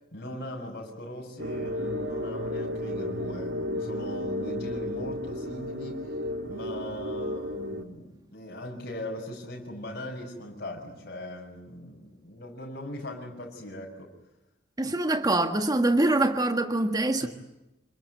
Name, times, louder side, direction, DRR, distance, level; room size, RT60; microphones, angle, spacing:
voice 1, 0.1-6.0 6.5-14.1 17.2-17.3, left 1 dB, 55° left, 6.2 m, -39 dB
sound 1, 1.4-7.8, left 1 dB, 80° right, 2.1 m, -33 dB
voice 2, 14.8-17.3, right 2 dB, 20° right, 1.6 m, -24 dB
28.0 x 21.5 x 9.3 m
head